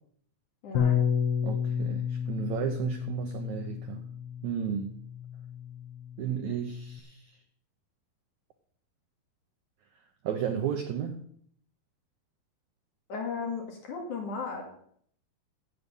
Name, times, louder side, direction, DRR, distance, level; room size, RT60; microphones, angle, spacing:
voice 1, 0.6-1.1 13.1-14.6, left 4 dB, 55° left, 1 dB, 3.3 m, -35 dB
Bass guitar, 0.8-7.0, left 8 dB, 85° left, 3.1 m, -31 dB
voice 2, 1.4-4.0 4.4-4.9 6.2-7.3 10.2-11.2, right 9 dB, 85° right, 6 dB, 1.6 m, -33 dB
13.5 x 8.3 x 5.4 m, 0.65 s
omnidirectional pair, 4.5 m